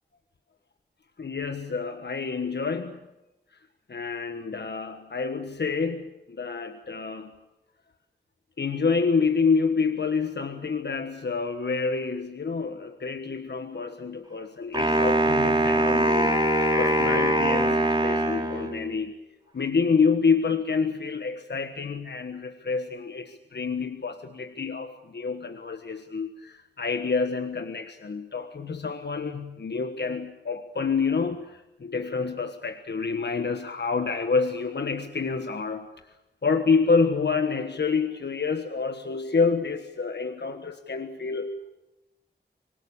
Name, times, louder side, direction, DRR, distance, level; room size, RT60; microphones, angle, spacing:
voice 1, 1.2-3.0 3.9-6.1 6.4-7.3 8.6-16.4 16.8-19.1 19.5-35.9 36.4-41.7, left 5 dB, 70° left, 7 dB, 1.4 m, -28 dB
Wind instrument woodwind instrument, 14.7-19.0, right 1 dB, 25° right, 5.7 m, -23 dB
25.0 x 19.0 x 8.5 m, 0.95 s
wide cardioid pair, 55°, 18 cm